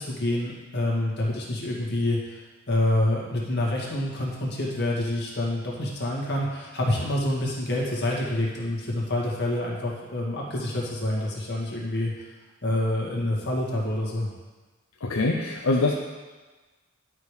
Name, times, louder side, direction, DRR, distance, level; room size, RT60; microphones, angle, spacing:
voice 1, 0.0-2.4 2.7-12.1 12.6-14.3, left 1 dB, 55° left, -4 dB, 2.1 m, -27 dB
voice 2, 15.0-15.9, left 2 dB, 75° left, 0 dB, 0.7 m, -23 dB
11.0 x 5.1 x 5.0 m, 1.3 s
head